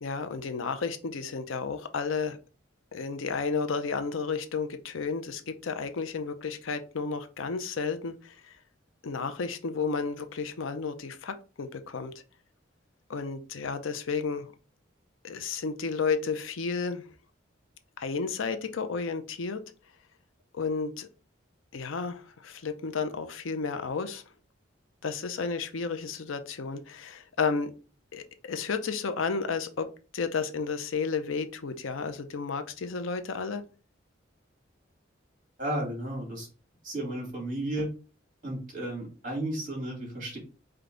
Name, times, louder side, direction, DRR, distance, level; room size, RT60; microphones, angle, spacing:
voice 1, 0.0-2.4 2.9-8.5 9.0-12.1 13.1-14.5 15.2-17.0 18.0-19.6 20.5-21.1 21.7-24.2 25.0-27.7 28.1-29.9 30.1-33.6, left 5 dB, 90° left, 9 dB, 0.6 m, -32 dB
voice 2, 35.6-36.5 36.8-37.9 38.4-40.4, right 1 dB, 40° right, -2 dB, 2.5 m, -33 dB
5.0 x 2.3 x 3.8 m, 0.35 s
head